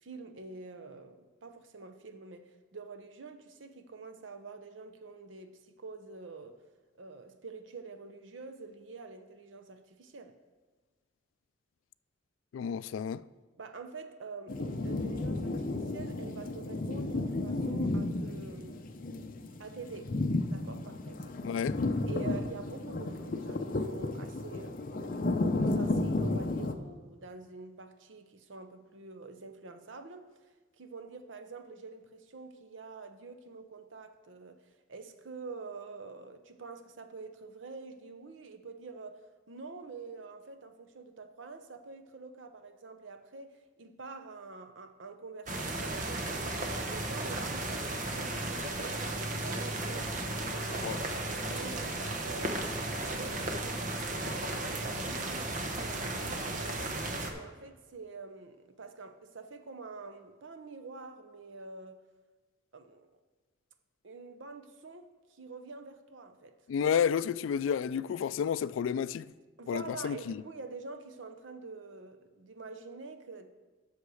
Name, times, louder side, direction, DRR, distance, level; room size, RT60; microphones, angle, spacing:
voice 1, 0.0-6.6 7.0-10.4 13.6-18.9 19.6-20.2 20.5-21.4 22.1-25.4 25.7-30.3 30.8-39.2 39.5-52.5 52.8-56.9 57.3-62.0 62.7-63.1 64.0-66.5 69.6-73.5, right 4 dB, 85° right, 0.8 m, -46 dB
voice 2, 12.5-13.2 21.4-21.8 50.8-51.0 66.7-69.3 69.7-70.4, left 7 dB, 90° left, 0.3 m, -31 dB
sound 1, 14.5-26.7, left 2 dB, 45° left, 0.6 m, -33 dB
sound 2, 45.5-57.3, right 2 dB, 45° right, 1.0 m, -35 dB
8.2 x 6.5 x 6.3 m
head